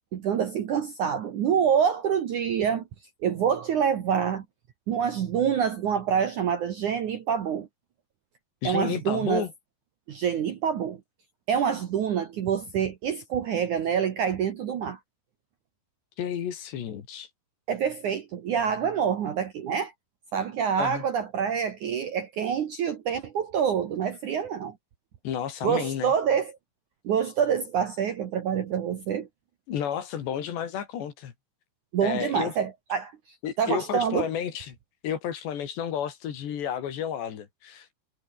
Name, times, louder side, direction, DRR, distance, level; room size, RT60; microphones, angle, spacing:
voice 1, 0.1-2.8 3.2-4.5 4.9-7.7 8.6-9.5 10.1-11.0 11.5-15.0 17.7-19.9 20.3-24.8 25.6-26.5 27.0-29.3 31.9-34.3, right 8 dB, 60° right, 2.2 m, -26 dB
voice 2, 8.6-9.5 16.2-17.3 20.8-21.0 25.2-26.1 29.7-31.3 32.0-32.5 33.4-34.8 35.0-37.9, left 9 dB, 65° left, 4.8 m, -31 dB
omnidirectional pair, 5.4 m